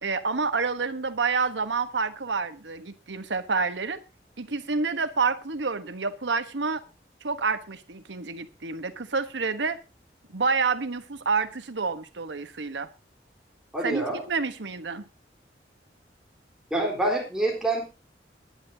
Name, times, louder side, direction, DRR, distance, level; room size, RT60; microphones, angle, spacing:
voice 1, 0.0-4.0 4.4-6.8 7.2-9.8 10.3-12.9 13.8-15.0, right 4 dB, 85° right, 1.2 m, -28 dB
voice 2, 13.7-14.2 16.7-17.8, right 2 dB, 5° right, 4.0 m, -26 dB
20.0 x 10.5 x 2.8 m
head